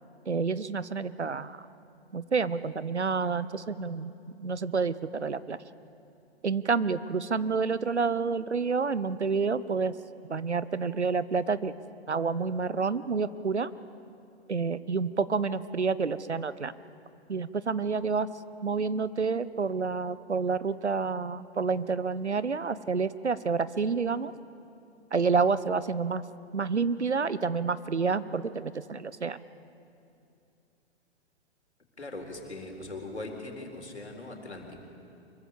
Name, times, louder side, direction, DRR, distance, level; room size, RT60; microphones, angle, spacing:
voice 1, 0.3-1.6 2.1-5.6 6.4-9.9 10.3-11.7 12.1-13.7 14.5-16.7 17.3-18.3 18.6-24.3 25.1-26.2 26.5-29.4, right 5 dB, 85° right, 16 dB, 0.9 m, -29 dB
voice 2, 32.0-34.8, left 2 dB, 80° left, 3 dB, 4.0 m, -40 dB
24.5 x 22.5 x 7.2 m, 2.6 s
figure-of-eight pair, 110°, 33 cm